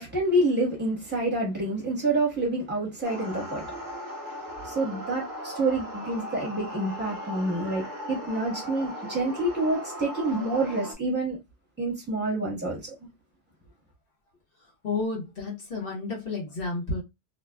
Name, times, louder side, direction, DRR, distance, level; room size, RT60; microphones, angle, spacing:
voice 1, 0.0-3.7 4.6-11.4 11.8-12.9, right 2 dB, 5° right, 1.1 m, -28 dB
sound 1, 3.0-10.9, equal, 80° right, 1.4 m, -38 dB
voice 2, 14.8-17.0, left 3 dB, 40° left, 1.1 m, -31 dB
2.8 x 2.3 x 2.2 m
omnidirectional pair, 1.7 m